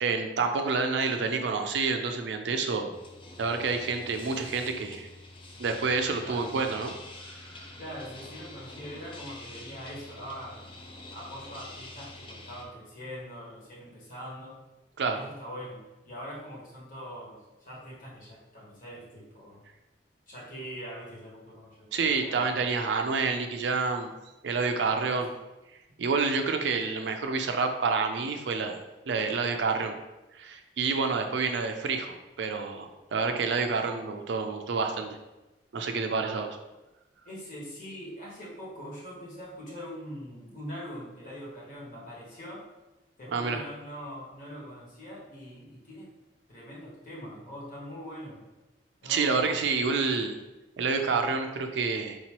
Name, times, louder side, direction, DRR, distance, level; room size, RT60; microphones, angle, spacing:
voice 1, 0.0-2.9 3.4-5.1 5.6-6.9 15.0-15.2 21.9-24.1 24.4-25.3 26.0-28.8 29.1-29.9 30.4-35.2 35.7-36.6 43.3-43.6 49.0-50.3 50.8-52.2, right 4 dB, 75° right, 5 dB, 0.4 m, -28 dB
sound 1, 2.9-12.7, left 2 dB, 30° left, 0.5 m, -46 dB
voice 2, 7.8-10.7 11.1-14.6 15.1-19.6 20.3-22.6 24.9-25.3 37.2-42.6 43.2-46.1 46.5-48.5 49.0-49.6, equal, 50° left, -5 dB, 1.4 m, -43 dB
4.6 x 2.9 x 3.0 m, 1.0 s
head